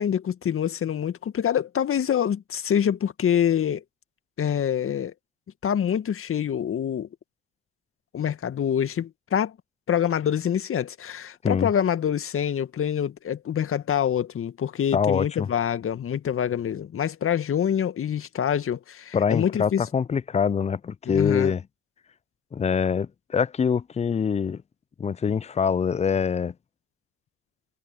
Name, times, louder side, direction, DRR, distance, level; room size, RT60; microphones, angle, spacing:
voice 1, 0.0-3.8 4.4-5.1 5.6-7.1 8.1-9.6 9.9-19.8 21.1-21.5, left 9 dB, 40° left, 2.0 m, -26 dB
voice 2, 14.9-15.5 19.1-21.6 22.5-24.6 25.0-26.5, left 6 dB, 20° left, 0.6 m, -24 dB
hypercardioid pair, 60°, 33 cm